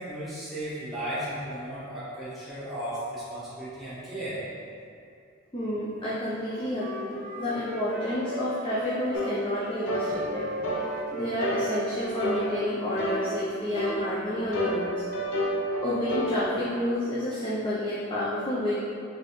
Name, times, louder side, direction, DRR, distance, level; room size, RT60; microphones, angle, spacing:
voice 1, 0.0-4.4, right 1 dB, ahead, -13 dB, 1.2 m, -35 dB
voice 2, 5.5-10.5 11.1-15.0 15.8-18.8, left 1 dB, 25° left, -9 dB, 0.5 m, -30 dB
Wind instrument woodwind instrument, 6.4-12.7, right 1 dB, 45° right, 0.4 m, -37 dB
sound 1, 9.1-9.3 9.9-10.1 10.6-10.9 11.4-11.7 12.2-12.4 13.0-13.2 13.8-14.0 14.5-16.3, equal, 65° left, 0.6 m, -29 dB
4.3 x 3.3 x 3.1 m, 2.4 s
head